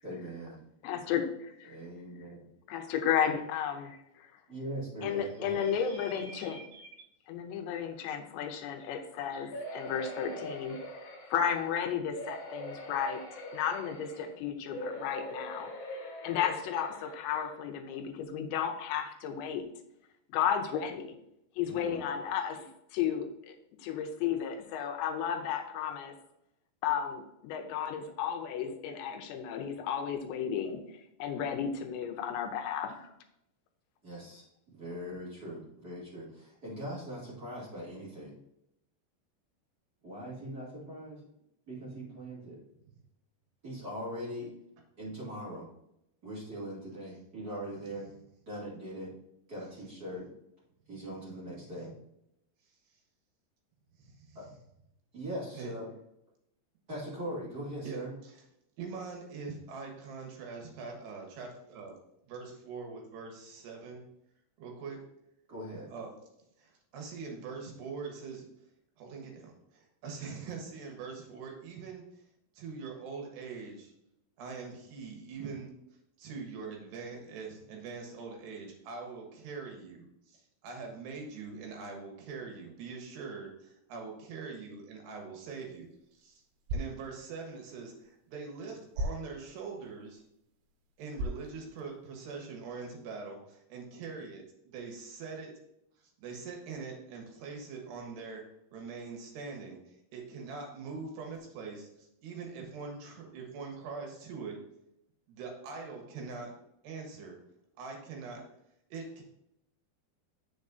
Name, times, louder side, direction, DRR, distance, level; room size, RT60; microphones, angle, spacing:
voice 1, 0.0-0.6 1.7-2.5 4.5-5.6 21.7-22.0 34.0-38.4 40.0-41.2 41.7-42.6 43.6-44.5 45.0-45.7 46.2-48.1 48.5-49.1 49.5-50.3 50.9-51.9 54.3-54.5 55.1-55.9 56.9-58.2 65.5-65.9, equal, 30° right, -7 dB, 1.9 m, -41 dB
voice 2, 0.8-1.8 2.7-4.3 5.0-6.6 7.3-13.2 13.5-19.6 20.3-21.2 21.6-26.1 26.8-30.8 31.2-33.1, left 8 dB, 85° left, 5 dB, 3.0 m, -33 dB
voice 3, 5.6-6.9 54.0-54.4 55.5-55.7 57.8-58.3 58.8-61.9 62.2-64.0 64.6-65.0 65.9-66.2 66.6-68.5 69.0-72.2 72.5-73.9 74.4-75.7 76.2-86.4 86.7-90.2 91.0-95.5 96.2-98.4 98.7-104.6 105.3-106.6 106.8-107.4 107.8-108.4 108.9-109.2, right 4 dB, 70° right, 1 dB, 3.3 m, -43 dB
sound 1, 9.5-11.7 12.1-14.3 14.7-17.6 18.1-18.2 18.5-18.6, equal, 55° left, 2.8 m, -43 dB
sound 2, 85.4-92.4, equal, 90° right, 3.0 m, -42 dB
8.4 x 6.8 x 2.6 m, 0.79 s
omnidirectional pair, 5.2 m